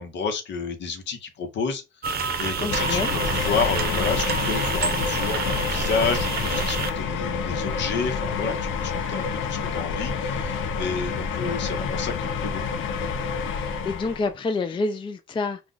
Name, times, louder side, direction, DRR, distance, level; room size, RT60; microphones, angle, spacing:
voice 1, 0.0-1.8 2.4-12.9, left 5 dB, 65° left, 0.9 m, -30 dB
sound 1, 2.0-6.9, right 6 dB, 50° right, 0.6 m, -28 dB
voice 2, 2.6-3.1 13.5-15.6, left 3 dB, 25° left, 0.4 m, -28 dB
sound 2, 2.7-14.3, left 5 dB, 80° left, 0.5 m, -28 dB
2.4 x 2.3 x 3.7 m
cardioid pair, 90°, 20 cm